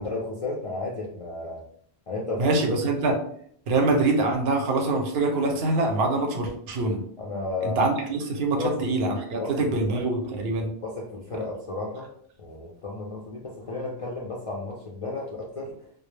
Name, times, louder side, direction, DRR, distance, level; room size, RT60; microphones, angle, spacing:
voice 1, 0.0-1.6 2.1-2.6 7.2-7.8 8.5-8.8 9.3-9.7 10.8-12.1 12.4-15.7, left 2 dB, 60° left, -3 dB, 0.3 m, -33 dB
voice 2, 2.4-3.2 3.7-7.0 7.6-10.7, right 2 dB, 75° right, 3 dB, 0.8 m, -24 dB
2.2 x 2.0 x 3.1 m, 0.64 s
omnidirectional pair, 1.1 m